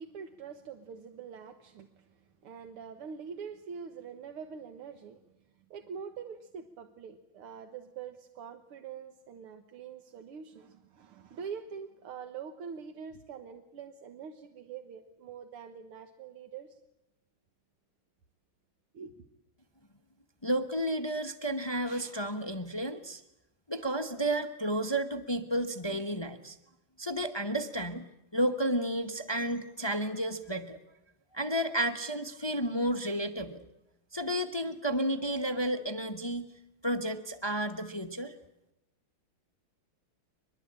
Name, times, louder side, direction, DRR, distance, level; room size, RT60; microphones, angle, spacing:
voice 1, 0.0-5.2 5.7-16.8 18.9-19.2, right 6 dB, 80° right, 7 dB, 2.2 m, -44 dB
voice 2, 20.4-23.2 23.7-26.6 27.0-28.0 28.3-30.8 31.3-33.6 34.1-36.5 36.8-38.3, right 1 dB, 20° left, 9 dB, 0.6 m, -32 dB
23.5 x 22.0 x 8.8 m, 0.87 s
omnidirectional pair, 2.4 m